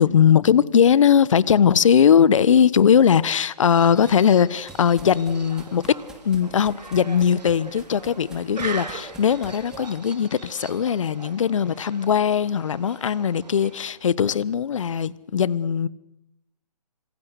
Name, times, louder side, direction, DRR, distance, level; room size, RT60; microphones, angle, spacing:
voice 1, 0.0-5.8 6.2-15.9, left 8 dB, 50° left, 1.2 m, -19 dB
sound 1, 3.7-14.1, right 4 dB, 90° right, 3.0 m, -41 dB
sound 2, 3.8-9.9, right 2 dB, 5° right, 2.6 m, -48 dB
26.0 x 25.0 x 8.3 m
hypercardioid pair, 155°, 21 cm